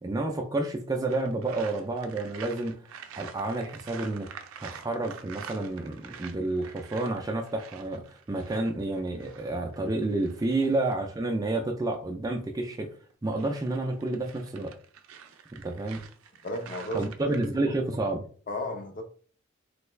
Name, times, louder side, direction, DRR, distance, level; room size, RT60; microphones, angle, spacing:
voice 1, 0.0-2.7 3.2-4.3 4.6-12.9 13.2-14.7 15.6-16.1 16.9-18.2, right 2 dB, 15° right, 0.3 m, -30 dB
sound 1, 1.1-11.0 13.1-17.5, right 7 dB, 80° right, 0.4 m, -47 dB
voice 2, 16.4-17.3 18.5-19.0, equal, 40° left, 0.5 m, -34 dB
3.2 x 2.2 x 3.1 m
head